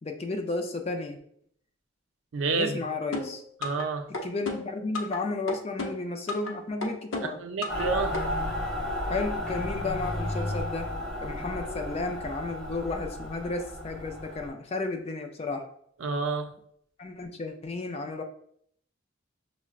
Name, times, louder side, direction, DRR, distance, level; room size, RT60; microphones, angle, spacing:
voice 1, 0.0-1.2 2.5-3.4 4.2-7.4 9.1-10.9 11.2-15.7 17.0-18.2, left 3 dB, 30° left, 5 dB, 0.4 m, -33 dB
voice 2, 2.3-2.8 3.6-4.1 7.4-8.2 16.0-16.5, right 4 dB, 75° right, 6 dB, 0.5 m, -29 dB
sound 1, 3.1-3.9 4.1-5.2 5.5-6.5 6.8-7.9 8.1-8.2, left 3 dB, 90° left, 0.6 m, -33 dB
Mechanical fan, 7.7-14.5, left 1 dB, ahead, 0.8 m, -33 dB
5.7 x 2.1 x 2.4 m, 0.66 s
head